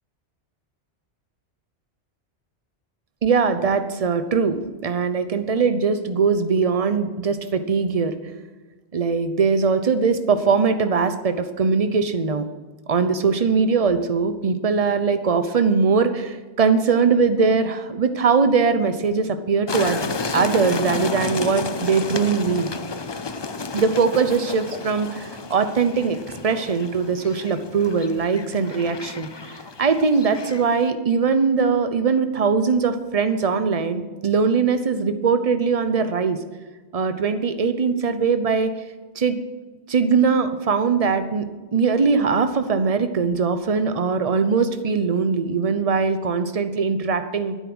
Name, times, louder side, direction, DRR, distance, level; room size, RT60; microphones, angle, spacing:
voice 1, 3.2-8.1 8.9-12.4 12.9-22.7 23.7-26.2 26.4-36.4 36.9-38.7 39.2-39.4 39.9-41.4 41.7-47.6, right 5 dB, 35° right, 10 dB, 0.8 m, -21 dB
sound 1, 19.7-30.9, left 4 dB, 35° left, 0.4 m, -31 dB
12.0 x 9.8 x 6.2 m, 1.3 s
omnidirectional pair, 1.2 m